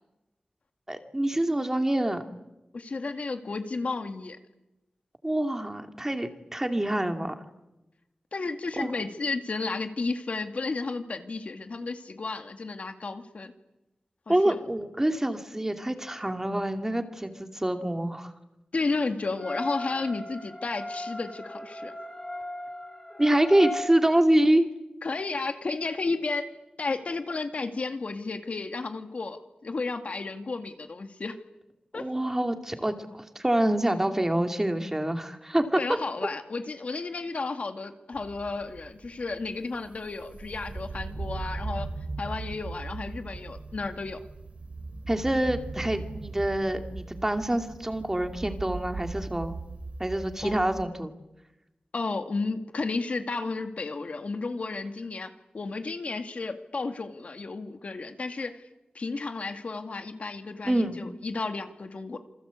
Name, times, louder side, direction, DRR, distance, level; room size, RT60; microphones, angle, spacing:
voice 1, 0.9-2.2 5.2-7.3 8.8-8.9 14.3-18.3 23.2-24.7 31.9-35.8 45.1-49.6 50.0-51.1 60.6-61.0, right 1 dB, 15° right, 6 dB, 2.5 m, -26 dB
voice 2, 2.7-4.4 8.3-13.5 14.3-14.6 18.7-21.9 25.0-26.5 26.8-31.4 31.9-32.1 35.8-41.9 42.2-44.2 50.4-50.6 51.9-58.6 58.9-62.2, left 3 dB, 65° left, 7 dB, 2.1 m, -33 dB
sound 1, 19.4-23.9, left 1 dB, 15° left, 2.6 m, -37 dB
sound 2, 38.1-50.8, right 3 dB, 60° right, 2.7 m, -39 dB
27.5 x 25.0 x 8.4 m, 0.97 s
wide cardioid pair, 105°, 2 cm